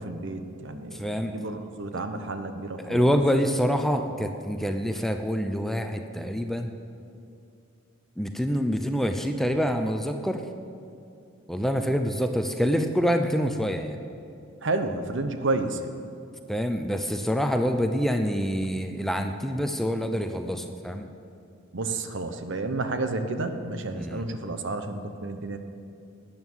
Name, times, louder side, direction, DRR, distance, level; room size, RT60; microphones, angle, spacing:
voice 1, 0.0-3.1 14.6-15.9 21.7-25.6, right 2 dB, 60° right, 8 dB, 0.9 m, -31 dB
voice 2, 0.9-1.3 2.8-6.7 8.2-10.5 11.5-14.0 16.5-21.1 23.9-24.2, equal, ahead, 6 dB, 0.5 m, -26 dB
12.5 x 9.2 x 7.3 m, 2.5 s
head